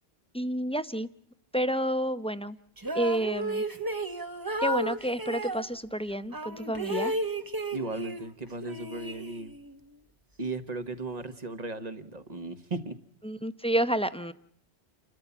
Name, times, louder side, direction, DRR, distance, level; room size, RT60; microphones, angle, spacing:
voice 1, 0.3-1.1 1.5-2.6 2.9-3.6 4.6-7.1 13.2-14.3, equal, 5° left, 12 dB, 0.7 m, -29 dB
sound 1, 2.8-5.6 6.3-8.3 8.6-9.7, right 2 dB, 20° right, 1.1 m, -33 dB
voice 2, 7.7-9.5 10.4-13.0, right 3 dB, 40° right, 10 dB, 1.5 m, -36 dB
29.5 x 13.0 x 7.1 m, 0.70 s
omnidirectional pair, 1.1 m